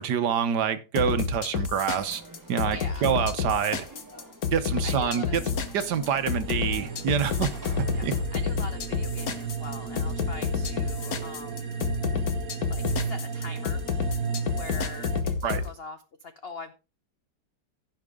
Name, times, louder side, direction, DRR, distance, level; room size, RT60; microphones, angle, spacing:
voice 1, 0.0-2.2 2.5-3.9 4.5-5.4 5.7-8.2 15.4-15.6, right 8 dB, 65° right, 1.4 m, -27 dB
sound 1, 0.9-15.6, left 6 dB, 55° left, 1.6 m, -29 dB
Conversation / Crowd, 2.0-8.2, right 1 dB, 10° right, 1.4 m, -48 dB
voice 2, 2.7-3.1 4.8-5.4 7.9-8.1 8.3-11.7 12.7-13.8 14.5-16.7, left 3 dB, 75° left, 0.5 m, -42 dB
sound 2, 5.0-15.2, right 6 dB, 50° right, 1.6 m, -35 dB
15.5 x 5.8 x 3.6 m
omnidirectional pair, 2.1 m